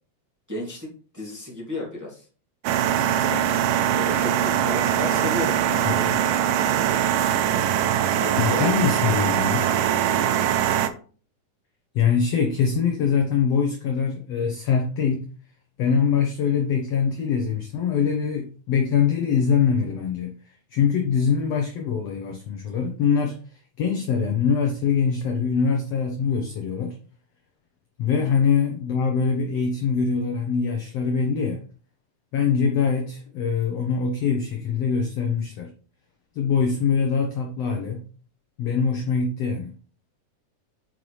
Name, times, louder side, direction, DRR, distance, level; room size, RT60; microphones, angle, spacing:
voice 1, 0.5-0.9 1.1-2.2 3.9-6.4 7.5-7.8 8.2-9.2 10.4-10.6 28.2-28.3, left 2 dB, 5° right, 1.9 m, -34 dB
sound 1, 2.6-10.9, right 10 dB, 90° right, 2.3 m, -22 dB
voice 2, 3.2-3.6 5.9-6.1 8.4-9.7 11.9-15.3 15.8-27.0 28.0-31.6 32.3-35.7 36.3-38.1 38.6-39.7, left 6 dB, 70° left, 1.6 m, -23 dB
7.8 x 5.6 x 3.2 m
omnidirectional pair, 3.7 m